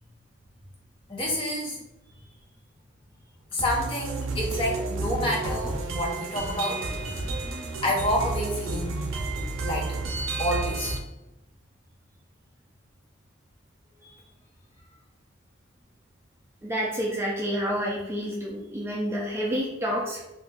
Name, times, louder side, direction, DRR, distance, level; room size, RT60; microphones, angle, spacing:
voice 1, 1.1-1.8 3.5-6.9 7.8-9.0 9.6-10.0 10.4-10.9, equal, 25° left, -3 dB, 0.8 m, -28 dB
sound 1, 3.6-11.0, right 2 dB, 80° right, 0.5 m, -31 dB
voice 2, 16.6-20.2, equal, 15° right, -3 dB, 0.3 m, -29 dB
2.5 x 2.2 x 3.8 m, 0.96 s
head